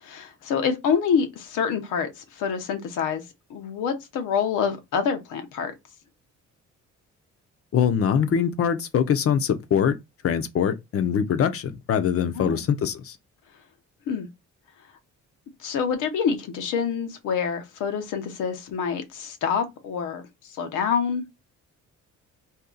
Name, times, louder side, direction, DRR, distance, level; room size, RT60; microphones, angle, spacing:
voice 1, 0.0-3.2 3.5-5.7 12.3-12.6 14.1-14.3 15.6-21.2, left 6 dB, 90° left, 0.8 m, -27 dB
voice 2, 7.7-9.9 10.2-13.2, left 8 dB, 50° left, 0.6 m, -23 dB
2.7 x 2.3 x 3.7 m
cardioid pair, 90°, 30 cm